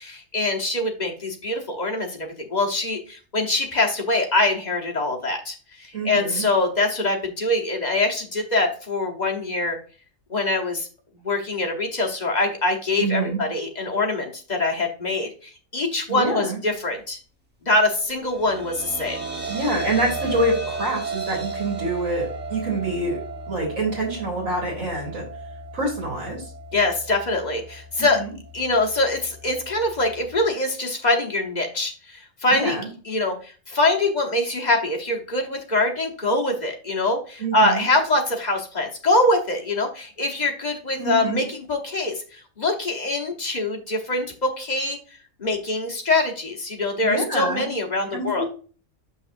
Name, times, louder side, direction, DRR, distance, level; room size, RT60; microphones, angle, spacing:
voice 1, 0.0-9.8 10.3-10.9 11.2-17.2 17.6-19.2 26.7-28.2 28.5-32.8 33.0-45.0 45.4-48.4, left 2 dB, 35° left, 1 dB, 1.0 m, -24 dB
voice 2, 5.9-6.4 13.0-13.4 16.1-16.6 19.5-23.2 23.5-25.2 25.7-26.4 28.0-28.3 32.5-32.9 37.4-37.9 41.0-41.4 47.0-47.7 48.1-48.4, right 2 dB, 80° right, -2 dB, 2.5 m, -26 dB
sound 1, 18.1-30.4, right 3 dB, 10° right, 0.9 m, -35 dB
7.1 x 5.5 x 2.5 m, 0.38 s
omnidirectional pair, 1.4 m